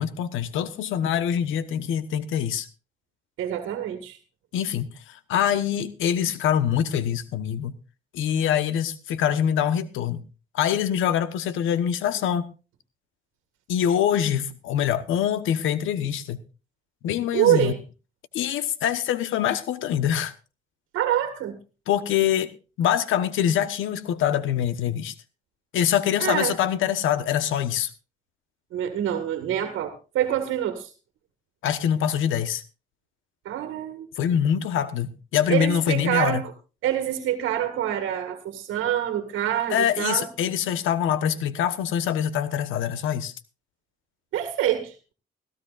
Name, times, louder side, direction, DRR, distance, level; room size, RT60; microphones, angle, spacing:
voice 1, 0.0-2.7 4.5-7.7 8.1-10.2 10.5-12.5 13.7-16.4 17.0-17.7 18.3-20.3 21.9-25.1 25.7-27.9 31.6-32.6 34.2-36.4 39.7-43.3, left 9 dB, 85° left, 1.2 m, -24 dB
voice 2, 3.4-4.2 17.3-17.8 20.9-21.6 26.2-26.5 28.7-30.9 33.4-34.3 35.5-36.5 36.8-40.3 44.3-44.9, right 11 dB, 85° right, 1.8 m, -26 dB
18.0 x 16.0 x 2.5 m
cardioid pair, 90°, 20 cm